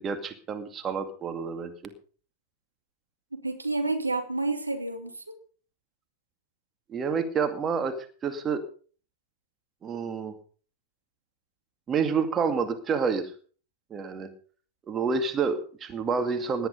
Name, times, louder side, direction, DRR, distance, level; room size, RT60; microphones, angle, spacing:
voice 1, 0.0-1.7 6.9-8.0 8.2-8.6 9.8-10.4 11.9-13.3 13.9-14.3 14.9-16.7, right 5 dB, 25° right, 8 dB, 2.2 m, -28 dB
voice 2, 3.3-5.4, right 2 dB, 85° right, 6 dB, 2.3 m, -30 dB
18.0 x 11.5 x 5.3 m, 0.42 s
figure-of-eight pair, 90°, 0 cm